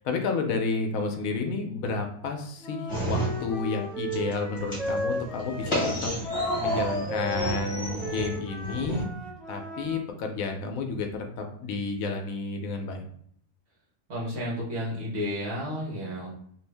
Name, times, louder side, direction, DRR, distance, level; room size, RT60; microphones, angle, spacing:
voice 1, 0.0-5.9 6.3-9.1 9.5-13.0, left 4 dB, 75° left, 4 dB, 1.0 m, -31 dB
Wind instrument woodwind instrument, 2.6-10.0, equal, ahead, 0.6 m, -35 dB
sound 1, 2.9-3.8 4.1-9.0, right 1 dB, 20° left, 1.2 m, -31 dB
voice 2, 14.1-16.3, equal, 50° right, -4 dB, 1.2 m, -32 dB
2.7 x 2.5 x 3.3 m, 0.64 s
omnidirectional pair, 1.5 m